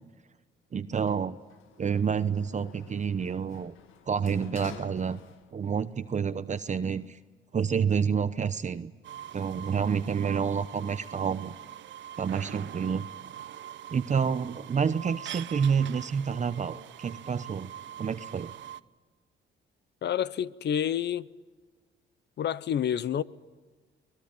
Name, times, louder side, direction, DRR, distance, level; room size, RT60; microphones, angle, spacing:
voice 1, 0.7-1.4 1.8-3.8 4.1-5.2 5.5-7.2 7.5-8.9 9.3-11.5 12.2-13.1 13.9-17.7 18.0-18.5, right 6 dB, 35° right, 0.8 m, -28 dB
Sliding door, 1.0-5.8 6.1-7.1, left 8 dB, 85° left, 1.8 m, -50 dB
sound 1, 9.0-18.8, right 11 dB, 70° right, 0.8 m, -43 dB
voice 2, 20.0-21.3 22.4-23.2, left 9 dB, 60° left, 0.8 m, -28 dB
24.0 x 20.0 x 9.0 m
cardioid pair, 90°, 20 cm